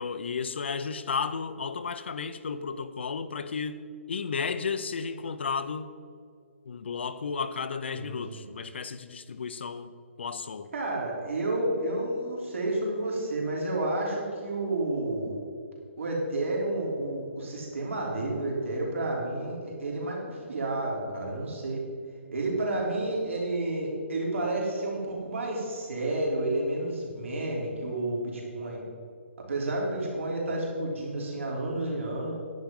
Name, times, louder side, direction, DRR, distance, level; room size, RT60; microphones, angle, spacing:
voice 1, 0.0-3.8 4.1-5.9 6.7-9.9 10.2-10.7, left 5 dB, 55° left, 11 dB, 0.6 m, -33 dB
voice 2, 7.9-8.5 10.7-15.3 16.0-21.8 22.3-28.8 29.5-32.3, right 2 dB, 70° right, -2 dB, 3.4 m, -30 dB
10.5 x 9.2 x 5.3 m, 2.2 s
hypercardioid pair, 175°, 7 cm